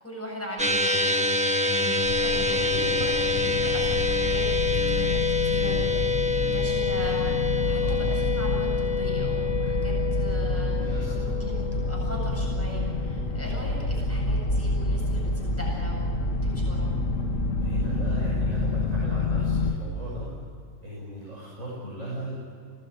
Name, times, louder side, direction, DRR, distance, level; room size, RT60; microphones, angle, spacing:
voice 1, 0.0-17.0, equal, 10° left, -3 dB, 7.9 m, -40 dB
sound 1, 0.6-13.1, left 3 dB, 5° right, 1.4 m, -27 dB
sound 2, 2.0-19.7, left 2 dB, 85° left, 1.7 m, -28 dB
voice 2, 7.6-8.0 10.7-11.4 17.6-20.3 20.8-22.4, right 1 dB, 80° right, -5 dB, 6.9 m, -37 dB
29.0 x 19.0 x 9.4 m, 2.4 s
omnidirectional pair, 1.3 m